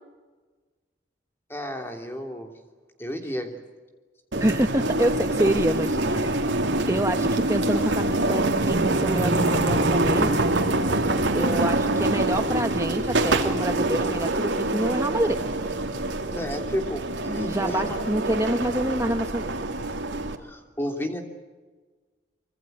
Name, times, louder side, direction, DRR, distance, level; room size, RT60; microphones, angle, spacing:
voice 1, 1.5-2.5 3.0-3.6 16.3-18.0 20.4-21.2, equal, 10° left, 3 dB, 3.1 m, -31 dB
voice 2, 4.3-6.4 6.9-10.3 11.3-15.4 17.5-19.6, right 1 dB, 15° right, 5 dB, 1.1 m, -27 dB
sound 1, 4.3-20.4, right 2 dB, 80° right, 2.6 m, -25 dB
25.5 x 24.5 x 8.1 m, 1.3 s
head